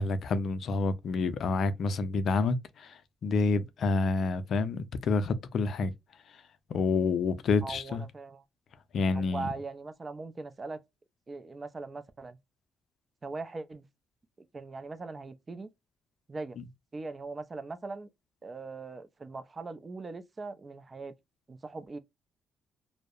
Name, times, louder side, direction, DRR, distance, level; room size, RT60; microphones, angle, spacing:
voice 1, 0.0-5.9 6.7-8.0 8.9-9.5, left 4 dB, 60° left, 0.4 m, -28 dB
voice 2, 7.6-8.4 9.1-10.8 11.3-12.4 13.2-13.9 14.4-15.7 16.3-16.6 16.9-18.1 18.4-21.1 21.5-22.0, right 3 dB, 30° right, 0.4 m, -40 dB
2.6 x 2.0 x 2.3 m
cardioid pair, 90°, 0 cm